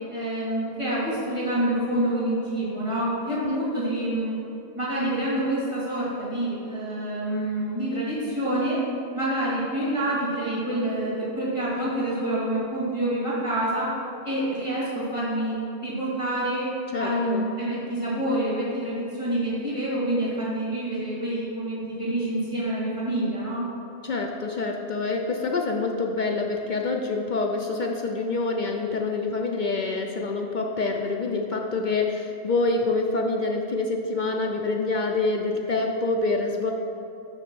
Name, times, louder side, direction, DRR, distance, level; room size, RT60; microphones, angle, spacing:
voice 1, 0.1-4.4 4.8-8.8 9.1-13.9 14.2-16.7 17.0-23.6, right 1 dB, 25° right, -10 dB, 2.2 m, -27 dB
voice 2, 3.3-3.6 16.9-17.5 24.0-36.7, left 3 dB, 55° left, 1 dB, 0.6 m, -26 dB
6.5 x 5.8 x 6.1 m, 2.8 s
omnidirectional pair, 1.3 m